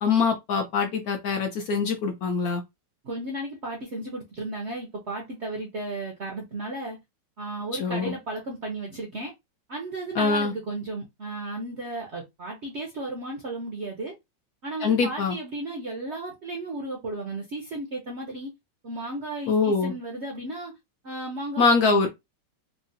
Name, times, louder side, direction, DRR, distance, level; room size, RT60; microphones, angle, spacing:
voice 1, 0.0-2.6 7.8-8.1 10.2-10.5 14.8-15.4 19.5-19.9 21.6-22.1, left 4 dB, 70° left, 0.9 m, -23 dB
voice 2, 3.0-7.0 7.4-9.3 9.7-14.2 14.6-18.5 18.8-20.7 21.0-22.1, right 2 dB, 60° right, 0.7 m, -34 dB
3.6 x 2.1 x 2.6 m
omnidirectional pair, 2.0 m